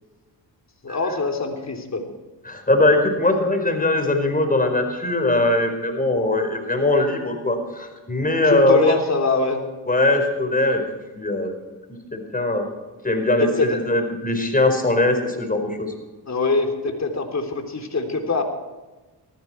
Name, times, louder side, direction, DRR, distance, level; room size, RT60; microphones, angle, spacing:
voice 1, 0.8-2.0 8.4-9.6 13.4-13.7 16.3-18.4, left 3 dB, 40° left, 4 dB, 3.5 m, -23 dB
voice 2, 2.5-9.0 9.9-10.8 11.1-11.5 12.1-12.6 13.0-15.9, left 2 dB, 20° left, 4 dB, 4.9 m, -20 dB
19.0 x 14.5 x 4.6 m, 1.2 s
supercardioid pair, 60°, 43 cm